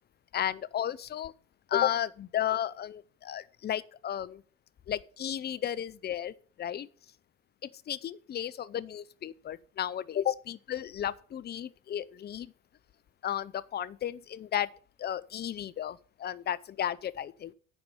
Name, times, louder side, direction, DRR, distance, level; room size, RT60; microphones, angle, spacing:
voice 1, 0.3-1.3 1.7-4.4 4.9-6.9 7.9-12.5 13.2-14.7 15.0-17.5, left 10 dB, 25° left, 0.6 m, -33 dB
9.9 x 4.3 x 6.9 m
hypercardioid pair, 65°, 40 cm